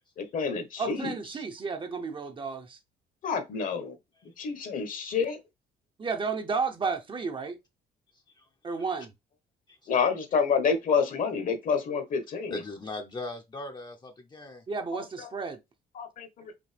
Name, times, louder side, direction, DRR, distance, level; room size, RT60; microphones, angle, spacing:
voice 1, 0.2-1.1 3.2-4.0 4.2-5.4 9.9-12.6 14.9-15.0 15.9-16.5, left 6 dB, 55° left, 1.3 m, -28 dB
voice 2, 0.8-2.8 6.0-7.6 8.6-9.1 14.7-15.6, right 5 dB, 30° right, 0.8 m, -32 dB
voice 3, 12.5-14.6, left 2 dB, 25° left, 0.8 m, -38 dB
5.2 x 2.8 x 3.4 m
cardioid pair, 110°, 17 cm